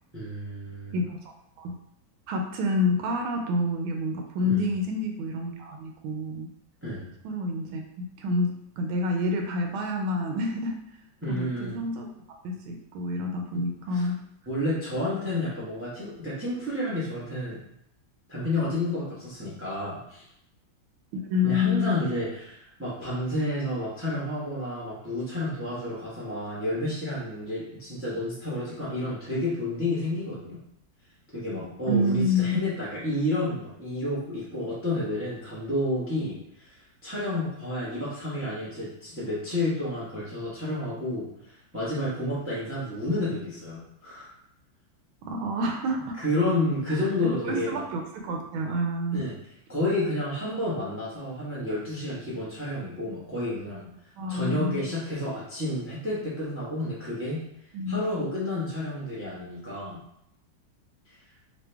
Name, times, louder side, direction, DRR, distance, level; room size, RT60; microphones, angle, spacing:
voice 1, 0.1-1.0 4.4-4.7 6.8-7.1 11.2-11.8 13.5-13.6 13.9-14.1 14.5-17.6 18.3-20.2 21.4-30.6 31.3-36.8 37.0-44.3 46.2-47.8 49.1-49.4 49.7-53.9 54.3-57.4 57.9-60.0, left 1 dB, 10° right, -7 dB, 0.6 m, -30 dB
voice 2, 0.9-1.3 1.6-1.7 2.3-6.5 7.2-10.8 11.3-12.1 12.4-14.2 21.1-22.0 31.9-32.6 45.2-46.2 46.9-47.1 47.5-49.2 54.2-54.8 57.7-58.3, left 2 dB, 90° right, 2 dB, 1.4 m, -28 dB
3.2 x 3.0 x 3.3 m, 0.75 s
omnidirectional pair, 2.2 m